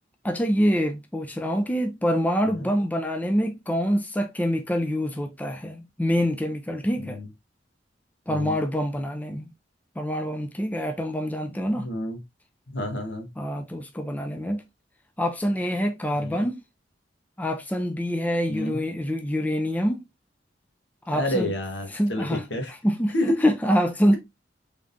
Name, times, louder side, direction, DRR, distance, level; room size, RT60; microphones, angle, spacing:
voice 1, 0.2-7.2 8.3-9.5 10.0-11.9 13.4-14.6 15.2-16.6 17.4-20.0 21.1-21.5 21.9-22.4 22.7-24.2, equal, 10° left, 0.4 m, -25 dB
voice 2, 11.7-12.2 12.7-13.3 16.2-16.4 18.5-18.8 21.1-22.7 23.1-23.4, left 1 dB, 75° left, 1.3 m, -29 dB
3.6 x 3.6 x 2.6 m
head